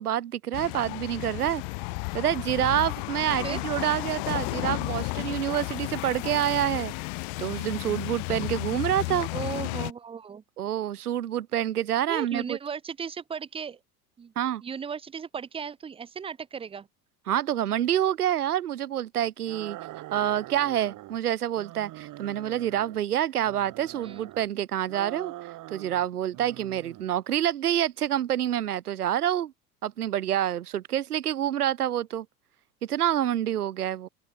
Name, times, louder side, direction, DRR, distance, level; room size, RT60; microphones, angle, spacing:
voice 1, 0.0-1.6 2.1-6.9 7.4-9.3 10.6-12.6 14.4-14.6 17.3-19.8 20.1-25.3 25.7-29.5 29.8-32.3 32.8-34.1, right 11 dB, 80° right, 0.7 m, -27 dB
sound 1, 0.5-9.9, left 40 dB or more, 40° left, 0.5 m, -33 dB
voice 2, 9.3-10.4 12.1-13.8 14.2-14.3 14.6-16.9 24.0-24.3, right 6 dB, 10° right, 0.7 m, -36 dB
sound 2, 19.5-21.2 21.5-23.0 23.4-24.5 24.9-26.1 26.3-27.1, right 16 dB, 40° right, 5.0 m, -43 dB
open air
figure-of-eight pair, 80°, 45 cm